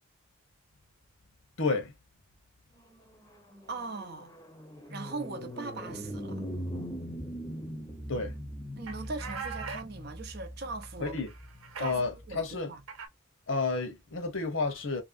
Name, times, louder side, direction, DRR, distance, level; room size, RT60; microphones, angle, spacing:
voice 1, 1.6-1.9 8.1-8.4 11.0-11.3 11.8-12.7 13.5-15.0, left 3 dB, 70° left, 1.0 m, -31 dB
sound 1, 2.9-12.4, equal, 15° left, 0.7 m, -41 dB
voice 2, 3.7-4.3 4.9-6.4 8.8-11.2 11.8-12.8, right 3 dB, 50° right, 0.6 m, -40 dB
sound 2, 8.9-9.8 10.8-10.9 11.2-11.9 12.9-13.1, right 6 dB, 90° right, 0.8 m, -40 dB
2.9 x 2.7 x 2.5 m
head